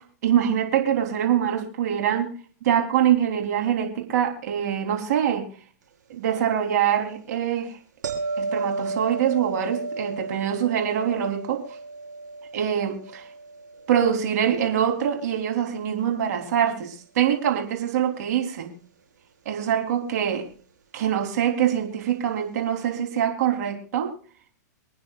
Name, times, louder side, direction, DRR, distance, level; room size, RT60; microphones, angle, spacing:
voice 1, 0.2-2.3 2.6-5.4 6.1-7.8 8.4-11.6 12.5-13.3 13.9-18.7 19.4-20.4 20.9-24.1, right 9 dB, 65° right, 3 dB, 3.4 m, -24 dB
sound 1, 8.0-15.0 20.3-20.5, right 3 dB, 90° right, 4.8 m, -33 dB
28.0 x 9.5 x 2.4 m, 0.42 s
hypercardioid pair, 125°, 10 cm